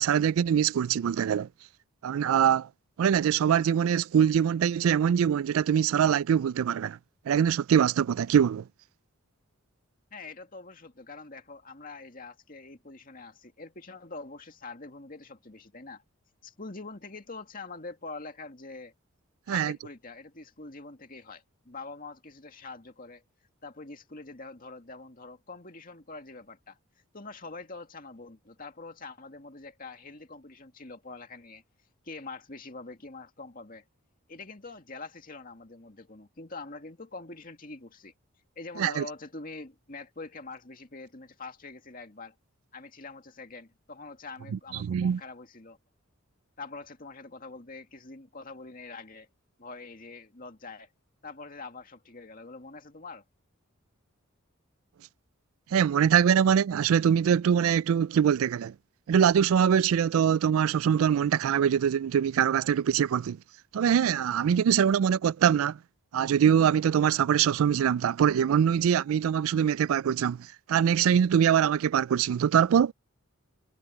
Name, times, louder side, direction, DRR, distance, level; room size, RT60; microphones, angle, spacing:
voice 1, 0.0-1.5 2.0-2.7 3.0-7.0 7.3-8.6 19.5-19.8 38.8-39.0 44.8-45.2 55.7-58.7 59.1-63.4 63.7-65.8 66.1-72.9, right 8 dB, 80° right, 0.3 m, -23 dB
voice 2, 10.1-16.0 16.4-18.9 19.5-23.2 23.6-26.8 27.1-31.6 32.0-33.8 34.3-38.1 38.6-42.3 42.7-45.8 46.6-49.3 49.6-50.9 51.2-53.2, left 3 dB, 40° left, 2.2 m, -44 dB
head